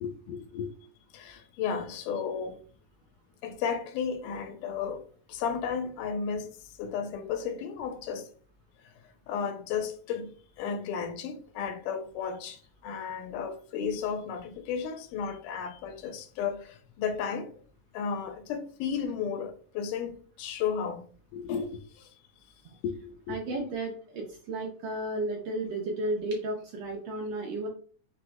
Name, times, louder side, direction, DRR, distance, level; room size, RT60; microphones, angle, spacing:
voice 1, 0.0-0.7 1.1-2.6 3.4-8.3 9.3-17.5 17.9-21.1 21.3-22.1 22.8-23.4, left 6 dB, 85° left, 2.2 m, -34 dB
voice 2, 23.3-27.7, right 2 dB, 75° right, 1.6 m, -33 dB
6.0 x 3.0 x 2.2 m
omnidirectional pair, 3.7 m